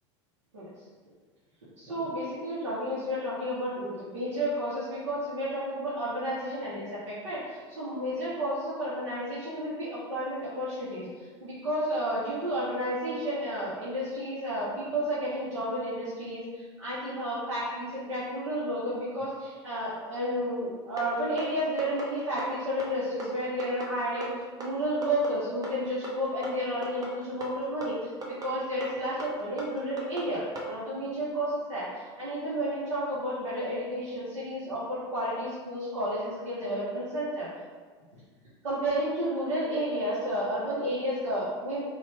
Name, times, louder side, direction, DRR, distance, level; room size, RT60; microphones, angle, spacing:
voice 1, 1.8-24.3 24.6-28.1 28.4-37.5 38.6-41.8, equal, 85° right, -11 dB, 0.9 m, -31 dB
sound 1, 21.0-30.7, right 3 dB, 25° right, 0.7 m, -38 dB
2.9 x 2.4 x 3.4 m, 1.5 s
hypercardioid pair, 85°, 15 cm